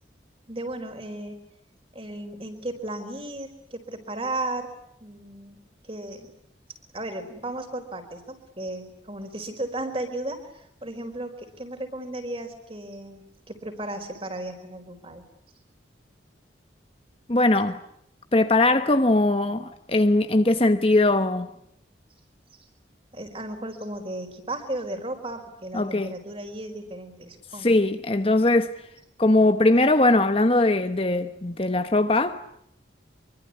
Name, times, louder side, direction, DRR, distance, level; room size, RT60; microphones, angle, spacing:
voice 1, 0.5-1.4 1.9-4.7 5.0-5.6 5.8-6.3 6.9-15.3 22.5-22.6 23.1-27.8, right 1 dB, 30° right, 4.7 m, -35 dB
voice 2, 17.3-17.8 18.3-21.5 25.7-26.1 27.6-28.7 29.2-32.4, left 2 dB, 30° left, 1.1 m, -20 dB
25.5 x 24.0 x 9.7 m
head